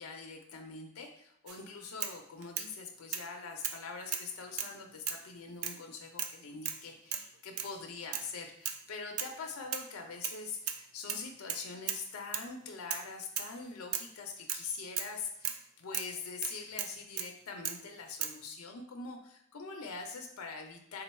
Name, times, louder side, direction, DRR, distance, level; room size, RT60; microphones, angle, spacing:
voice 1, 0.0-21.0, left 4 dB, 80° left, 3 dB, 0.5 m, -43 dB
sound 1, 1.5-1.6 2.0-2.7 3.1-3.3 3.6-3.8 4.1-4.7 5.1-5.3 5.6-5.8 6.2-6.4 6.6-6.8 7.1-7.3 7.6-7.7 8.1-8.3 8.6-8.8 9.2-9.4 9.7-10.4 10.7-10.8 11.1-12.0 12.3-12.5 12.9-13.1 13.4-13.5 13.9-14.1 14.5-14.7 15.0-15.1 15.4-15.6 15.9-16.1 16.4-17.3 17.6-17.8 18.2-18.4, right 8 dB, 75° right, 0.4 m, -37 dB
3.7 x 2.2 x 4.1 m, 0.76 s
head